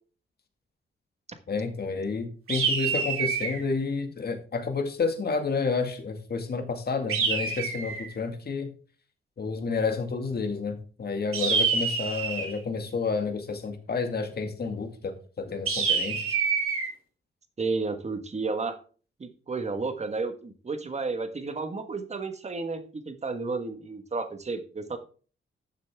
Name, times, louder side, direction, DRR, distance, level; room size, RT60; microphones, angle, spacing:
voice 1, 1.5-8.7 9.4-16.4, left 4 dB, 50° left, 5 dB, 2.0 m, -30 dB
sound 1, 2.5-3.6 7.1-8.1 11.3-12.6 15.7-16.9, right 5 dB, 80° right, 2.7 m, -27 dB
voice 2, 17.6-18.8 19.2-25.0, right 3 dB, 30° right, 8 dB, 1.4 m, -32 dB
12.5 x 7.2 x 3.5 m, 0.40 s
wide cardioid pair, 130°, 21 cm